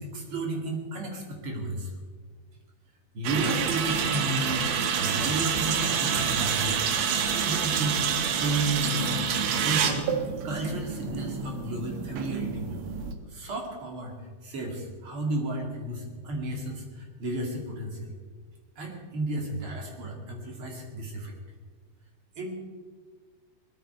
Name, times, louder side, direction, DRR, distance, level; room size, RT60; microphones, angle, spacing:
voice 1, 0.0-1.9 3.1-6.8 7.3-9.3 9.6-12.7 13.3-14.1 14.4-18.1 18.8-21.3 22.4-22.5, right 2 dB, 45° right, 1 dB, 3.1 m, -33 dB
sound 1, 3.2-13.1, right 7 dB, 70° right, 2.4 m, -28 dB
19.5 x 13.5 x 4.5 m, 1.5 s
omnidirectional pair, 3.6 m